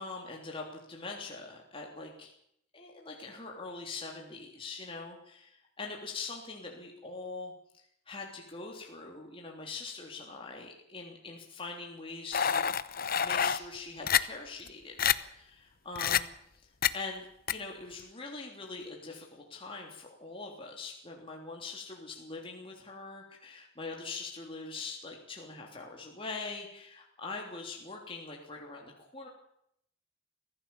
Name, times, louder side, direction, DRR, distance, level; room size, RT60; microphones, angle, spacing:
voice 1, 0.0-2.3 2.7-12.7 13.2-14.9 15.3-16.3 16.9-29.3, left 3 dB, 30° left, 0 dB, 3.4 m, -43 dB
sound 1, 12.3-13.6 14.1-14.2 14.7-14.8 15.0-15.2 16.0-16.2 16.8-16.9 17.5-17.6, left 8 dB, 50° left, 0.9 m, -27 dB
25.0 x 16.0 x 7.2 m, 0.73 s
head